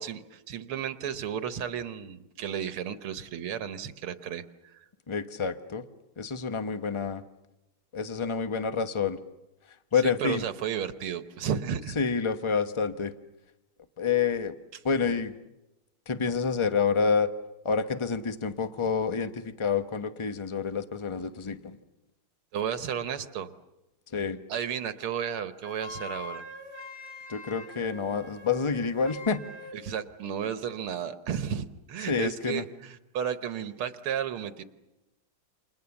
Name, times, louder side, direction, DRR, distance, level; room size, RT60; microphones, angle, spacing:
voice 1, 0.0-4.4 4.7-4.9 10.0-12.0 22.5-23.5 24.5-26.4 29.7-34.6, right 8 dB, 75° right, 11 dB, 2.0 m, -33 dB
voice 2, 5.1-5.8 6.2-7.2 7.9-9.2 9.9-10.4 12.0-13.1 14.0-14.5 14.8-15.4 16.1-17.3 17.6-21.8 24.1-24.4 27.3-29.4 32.1-32.6, left 5 dB, 30° left, 9 dB, 0.5 m, -28 dB
Wind instrument woodwind instrument, 25.6-29.8, left 2 dB, 50° left, 3.1 m, -43 dB
29.5 x 27.5 x 7.1 m, 1.0 s
omnidirectional pair, 2.4 m